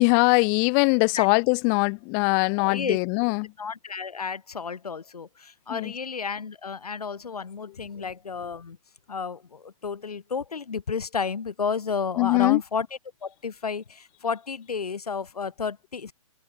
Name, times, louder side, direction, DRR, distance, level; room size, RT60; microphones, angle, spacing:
voice 1, 0.0-3.5 5.7-5.9 12.2-12.6, left 40 dB or more, 10° left, 0.5 m, -22 dB
voice 2, 2.6-3.0 3.6-8.8 9.1-12.9 13.2-16.1, left 5 dB, 90° left, 5.1 m, -32 dB
hypercardioid pair, 170°, 19 cm